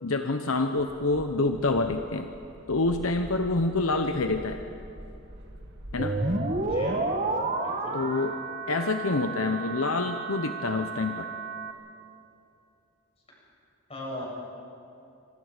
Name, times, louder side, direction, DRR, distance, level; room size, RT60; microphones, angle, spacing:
voice 1, 0.0-2.3 2.7-4.6 5.9-6.1 7.9-8.3 8.7-11.3, left 3 dB, 70° left, 6 dB, 1.0 m, -27 dB
sound 1, 0.8-6.4, right 1 dB, 55° right, 1.9 m, -45 dB
sound 2, 6.0-11.7, right 2 dB, 35° right, 1.6 m, -31 dB
voice 2, 6.6-7.0 7.6-8.0 13.9-14.3, left 1 dB, 30° left, -4 dB, 7.8 m, -38 dB
26.5 x 25.0 x 5.1 m, 2.8 s
head